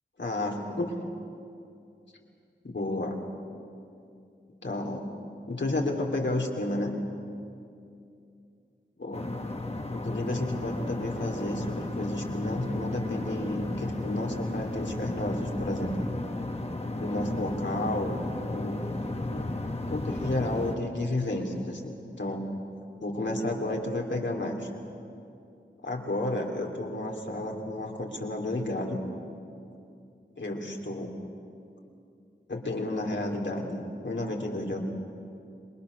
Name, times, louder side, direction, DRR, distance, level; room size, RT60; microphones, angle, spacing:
voice 1, 0.2-0.9 2.6-3.2 4.6-5.1 5.5-6.9 9.0-9.3 9.9-16.1 16.9-18.2 18.4-19.5 19.9-22.4 23.0-24.7 25.8-29.0 30.4-31.1 32.5-34.8, left 1 dB, 65° left, 0 dB, 3.0 m, -31 dB
sound 1, 9.1-20.8, left 2 dB, 30° left, 1.6 m, -34 dB
27.0 x 22.0 x 6.5 m, 2.6 s
wide cardioid pair, 80°, 20 cm